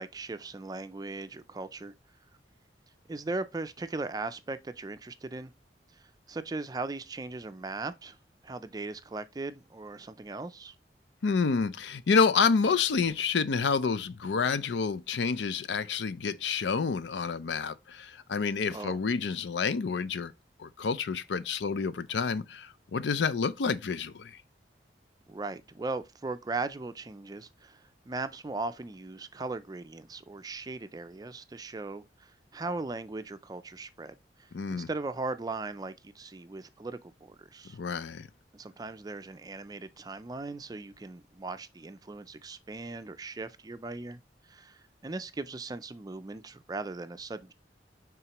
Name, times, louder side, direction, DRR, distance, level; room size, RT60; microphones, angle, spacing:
voice 1, 0.0-1.9 3.1-5.5 6.0-8.2 8.4-10.7 18.7-19.0 25.3-34.1 34.4-37.8 38.5-44.2 44.5-47.5, right 3 dB, 20° right, 0.4 m, -38 dB
voice 2, 11.2-20.3 20.6-24.4 34.5-34.9 37.7-38.3, left 5 dB, 85° left, 0.5 m, -28 dB
8.9 x 3.7 x 3.0 m
head